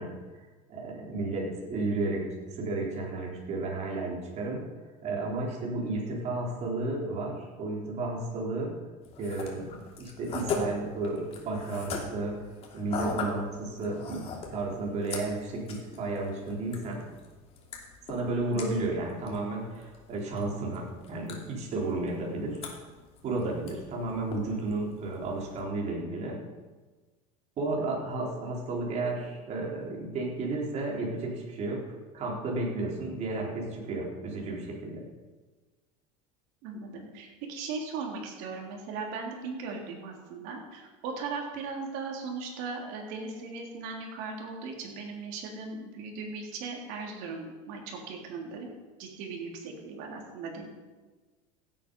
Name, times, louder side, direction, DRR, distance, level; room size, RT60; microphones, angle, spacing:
voice 1, 0.0-4.7 5.0-8.8 9.2-9.7 10.0-12.4 12.7-17.1 18.1-22.6 23.2-26.4 27.6-35.0, right 2 dB, 40° right, -2 dB, 3.8 m, -33 dB
sound 1, 9.0-25.6, left 4 dB, 35° left, 2.9 m, -41 dB
voice 2, 36.6-48.7 49.0-50.7, right 4 dB, 65° right, 0 dB, 3.5 m, -38 dB
16.0 x 8.7 x 5.5 m, 1.3 s
supercardioid pair, 130°, 18 cm